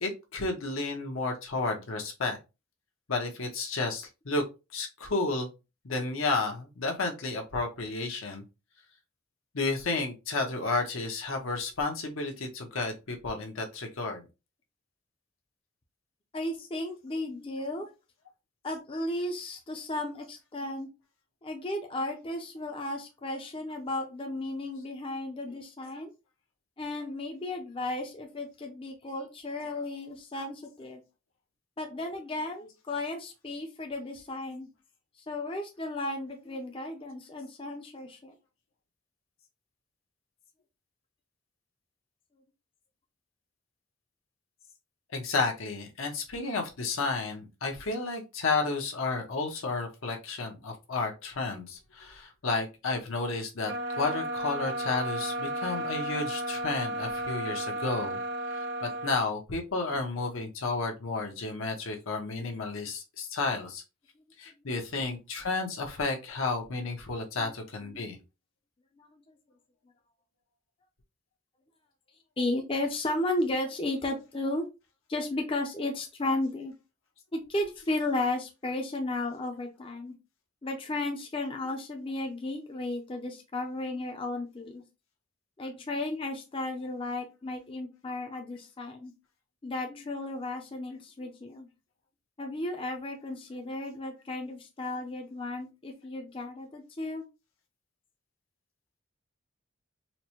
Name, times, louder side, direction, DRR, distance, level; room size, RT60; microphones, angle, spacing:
voice 1, 0.0-2.4 3.1-4.4 4.7-5.5 5.8-8.4 9.5-14.2 45.1-53.7 54.0-58.2 58.5-63.8 64.4-68.2, left 3 dB, 80° left, 2 dB, 0.9 m, -32 dB
voice 2, 16.3-17.9 18.6-20.9 21.4-26.1 26.8-31.0 31.8-34.7 35.2-38.3 67.4-67.5 67.9-68.2 69.0-69.4 72.4-74.6 75.1-76.7 77.3-80.1 80.6-84.8 85.6-89.1 89.6-91.7 92.4-97.2, left 2 dB, 25° left, 3 dB, 0.5 m, -34 dB
sound 1, 53.6-59.2, right 1 dB, 60° right, 0.5 m, -33 dB
4.1 x 2.1 x 2.9 m, 0.27 s
head